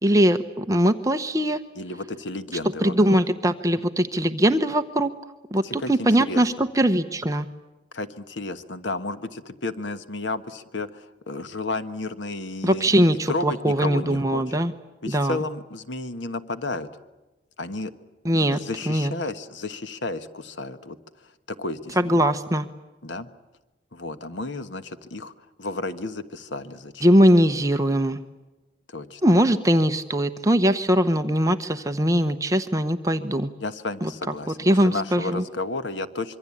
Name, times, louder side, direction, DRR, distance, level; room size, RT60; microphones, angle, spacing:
voice 1, 0.0-1.6 2.8-5.1 5.5-7.5 12.6-14.7 15.1-15.4 18.2-18.6 18.9-19.1 22.0-22.7 27.0-28.2 29.2-33.5 34.0-34.1 34.6-35.4, equal, 20° right, 7 dB, 0.9 m, -21 dB
voice 2, 1.8-3.2 5.6-6.4 7.9-12.9 13.3-14.4 15.0-16.9 17.6-17.9 18.5-21.0 21.5-22.3 23.0-23.3 23.9-25.3 25.6-27.1 28.9-29.2 33.6-34.6 34.8-36.4, left 2 dB, 85° left, 11 dB, 1.3 m, -32 dB
26.0 x 24.0 x 8.6 m, 1.1 s
head